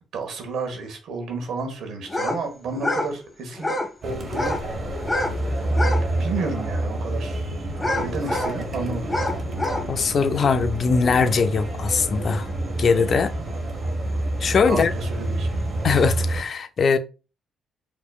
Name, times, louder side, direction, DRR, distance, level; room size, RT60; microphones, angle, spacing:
voice 1, 0.1-3.8 4.0-4.6 5.7-7.4 7.9-9.1 14.7-15.5, right 3 dB, 75° right, 1.4 m, -31 dB
sound 1, 2.1-2.4 2.7-3.1 3.5-3.9 4.3-4.6 5.0-5.4 5.7-6.0 6.6-6.7 7.8-8.6 9.1-9.9, left 1 dB, 15° left, 1.2 m, -26 dB
sound 2, 4.0-16.4, right 1 dB, 45° right, 1.3 m, -28 dB
voice 2, 9.9-12.5 12.8-13.3 14.4-14.9 15.8-17.0, left 5 dB, 50° left, 0.5 m, -21 dB
5.1 x 3.1 x 2.3 m
cardioid pair, 90°, 0 cm